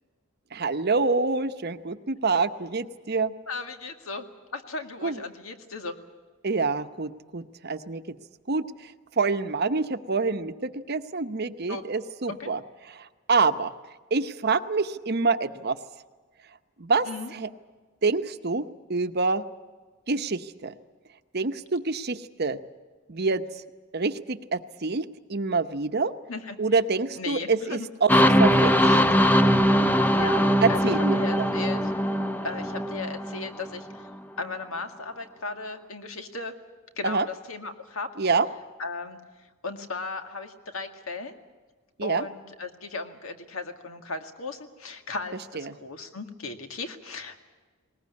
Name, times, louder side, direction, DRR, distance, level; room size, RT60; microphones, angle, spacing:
voice 1, 0.5-3.3 5.0-5.2 6.4-8.0 8.5-13.7 14.1-15.8 16.8-17.1 17.3-17.5 18.0-18.6 18.9-19.4 20.1-20.7 21.3-22.6 23.1-23.4 23.9-25.0 25.3-26.1 26.6-28.1 28.4-29.0 30.6-31.5 37.0-37.3 38.2-38.5 42.0-42.2 45.5-45.7, right 4 dB, 50° right, 10 dB, 0.9 m, -26 dB
voice 2, 3.5-4.3 4.5-6.0 11.7-11.8 12.3-12.5 17.0-17.3 26.3-26.6 27.2-27.9 30.1-30.8 31.1-31.8 32.4-34.0 34.4-36.5 37.0-38.1 38.8-39.2 39.6-41.4 42.0-47.5, left 3 dB, 75° left, 6 dB, 2.1 m, -36 dB
sound 1, 28.1-33.8, equal, 10° left, 0.7 m, -21 dB
20.5 x 19.5 x 9.6 m, 1.4 s
head